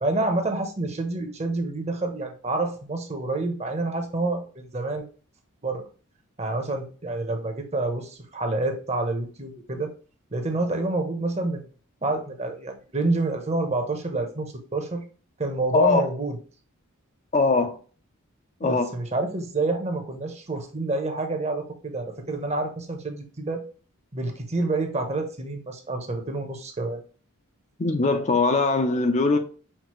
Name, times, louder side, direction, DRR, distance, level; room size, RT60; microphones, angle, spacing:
voice 1, 0.0-5.1 5.6-5.8 6.4-9.9 10.3-11.6 12.0-15.0 15.4-16.4 18.6-23.6 24.1-27.0, right 2 dB, 30° right, 0.9 m, -28 dB
voice 2, 17.3-17.8 18.6-18.9 27.8-29.4, left 3 dB, 35° left, 0.5 m, -21 dB
5.8 x 2.6 x 3.0 m
head